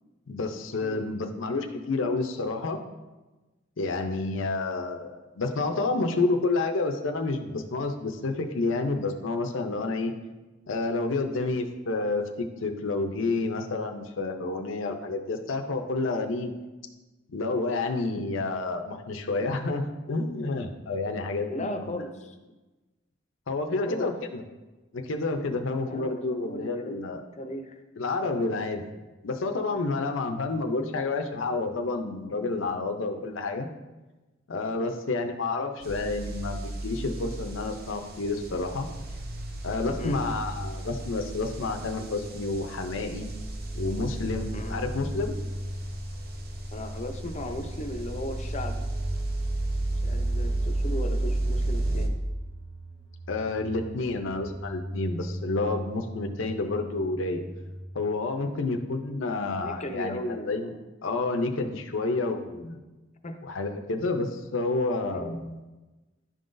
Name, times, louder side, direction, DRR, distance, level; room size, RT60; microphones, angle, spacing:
voice 1, 0.3-2.8 3.8-10.1 10.7-16.5 17.3-22.0 23.5-24.4 24.9-27.2 28.0-28.8 29.2-33.7 34.5-38.9 39.6-43.3 43.7-45.4 53.3-57.4 57.9-60.7 61.0-62.8 63.4-65.6, left 3 dB, 75° left, 4 dB, 0.6 m, -29 dB
voice 2, 21.5-22.4 23.9-24.1 25.8-27.8 34.8-35.0 40.0-40.2 44.5-44.8 46.7-48.9 49.9-52.2 59.6-60.8 63.2-63.4 65.1-65.4, left 1 dB, 35° left, 5 dB, 0.6 m, -37 dB
sound 1, 35.8-52.1, right 1 dB, 50° right, 0.7 m, -33 dB
sound 2, 38.7-57.8, equal, 75° right, 1.1 m, -40 dB
11.0 x 3.8 x 2.6 m, 1.1 s
head